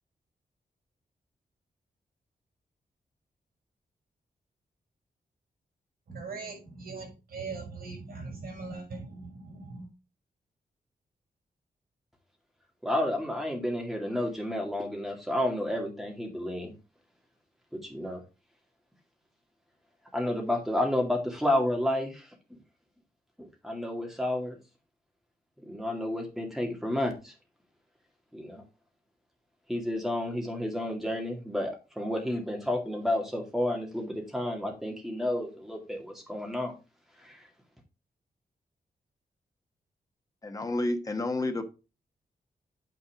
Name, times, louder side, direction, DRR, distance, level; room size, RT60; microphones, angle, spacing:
voice 1, 6.1-9.9, right 4 dB, 80° right, 5.9 m, -40 dB
voice 2, 12.8-16.7 17.7-18.2 20.1-22.3 23.4-24.6 25.6-27.3 28.3-28.6 29.7-36.7 37.2-37.5, left 1 dB, ahead, 2.2 m, -31 dB
voice 3, 40.4-41.6, left 2 dB, 25° left, 1.2 m, -30 dB
9.3 x 4.6 x 4.9 m
wide cardioid pair, 155°, 15 cm